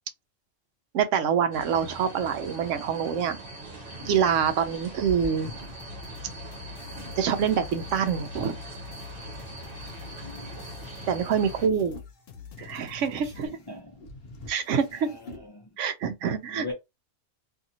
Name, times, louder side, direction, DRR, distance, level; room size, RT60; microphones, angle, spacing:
voice 1, 0.9-3.4 4.0-5.5 7.2-8.6 11.1-12.0 12.6-13.6 14.5-15.2 15.8-16.7, right 7 dB, 80° right, 0.9 m, -26 dB
sound 1, 1.5-11.7, right 2 dB, 50° right, 1.1 m, -42 dB
sound 2, 3.4-8.2 8.8-15.5, equal, 55° left, 0.9 m, -47 dB
sound 3, 5.8-13.5, left 7 dB, 80° left, 0.9 m, -44 dB
voice 2, 9.9-10.7 13.2-13.9 15.4-15.7 16.5-16.7, left 2 dB, 35° left, 0.4 m, -41 dB
2.7 x 2.5 x 2.7 m
omnidirectional pair, 1.3 m